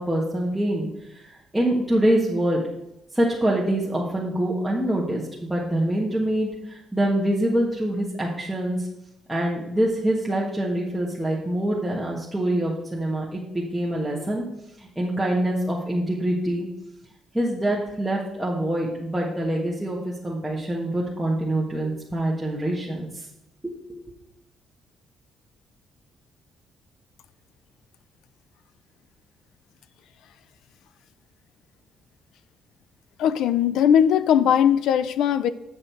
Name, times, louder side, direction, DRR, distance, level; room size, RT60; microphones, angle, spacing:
voice 1, 0.0-2.6 3.1-8.9 9.3-14.4 14.8-16.7 17.3-23.3 23.6-23.7, right 1 dB, 5° right, -5 dB, 1.4 m, -25 dB
voice 2, 33.2-35.5, left 9 dB, 85° left, 14 dB, 0.4 m, -19 dB
7.9 x 6.3 x 4.6 m, 0.87 s
cardioid pair, 90°, 0 cm